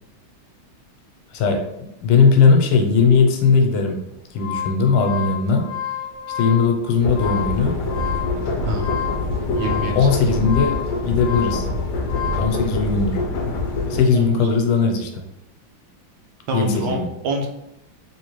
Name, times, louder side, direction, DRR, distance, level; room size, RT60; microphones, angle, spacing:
voice 1, 1.3-1.7 2.0-4.0 4.3-5.7 6.3-7.8 9.9-11.7 12.4-13.2 13.9-15.2 16.5-17.1, left 5 dB, 90° left, 3 dB, 1.5 m, -18 dB
sound 1, 4.1-12.6, left 10 dB, 20° left, 0.4 m, -30 dB
sound 2, 7.0-14.0, left 2 dB, 70° left, 1.1 m, -25 dB
voice 2, 8.6-9.0 9.5-10.1 14.1-14.3 16.5-17.0 17.2-17.5, right 1 dB, 75° right, 3 dB, 1.3 m, -26 dB
3.5 x 3.0 x 3.0 m, 0.85 s
omnidirectional pair, 2.3 m